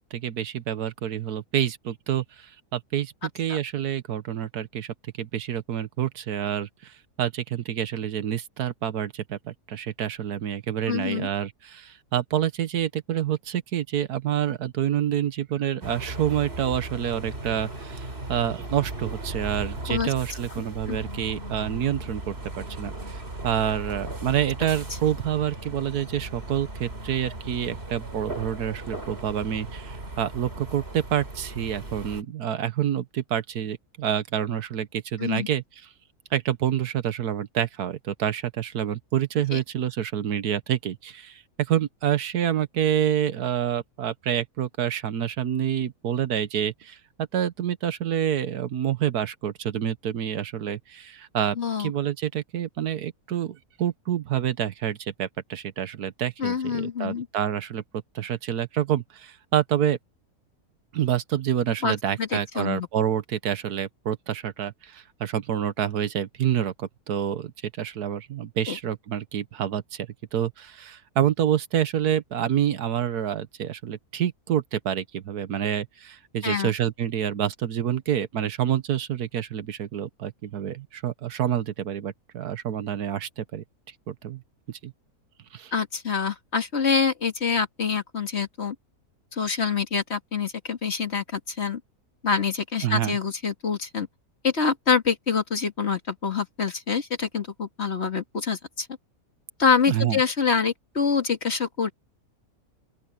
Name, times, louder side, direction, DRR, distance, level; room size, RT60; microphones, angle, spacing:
voice 1, 0.0-35.6 36.3-47.0 47.3-57.8 58.1-60.0 60.9-83.6 84.1-84.4 84.7-84.9 85.5-85.7 92.8-93.2 99.9-100.2, right 10 dB, 85° right, 1.6 m, -28 dB
voice 2, 10.9-11.3 19.9-20.1 20.9-21.0 35.2-35.5 39.5-39.6 51.6-51.9 56.4-57.3 61.8-62.9 68.7-68.8 76.4-76.7 85.7-88.8 89.3-91.8 92.2-94.1 94.4-98.9 99.6-101.9, left 6 dB, 45° left, 2.3 m, -26 dB
sound 1, 15.8-32.2, right 2 dB, 40° right, 3.8 m, -37 dB
open air
omnidirectional pair, 1.6 m